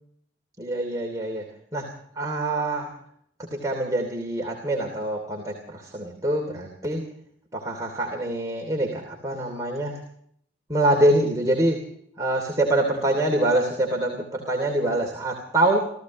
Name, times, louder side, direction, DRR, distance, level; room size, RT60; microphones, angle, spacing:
voice 1, 0.6-1.4 1.7-1.9 2.2-2.9 3.5-7.0 7.5-10.0 10.7-11.8 12.2-15.9, right 1 dB, 20° right, 0 dB, 2.9 m, -25 dB
30.0 x 15.0 x 3.1 m, 0.66 s
head